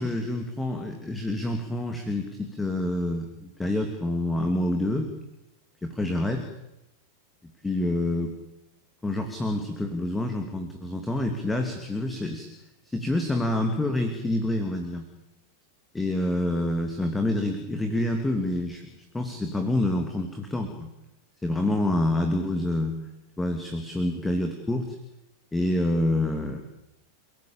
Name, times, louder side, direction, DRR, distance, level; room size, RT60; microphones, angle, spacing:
voice 1, 0.0-5.1 5.8-6.5 7.6-8.3 9.0-12.5 12.8-15.0 15.9-18.8 19.1-20.9 21.4-23.0 23.4-25.0 25.5-26.6, left 1 dB, 10° left, 5 dB, 3.0 m, -27 dB
30.0 x 17.5 x 9.0 m, 0.90 s
figure-of-eight pair, 90°, 0 cm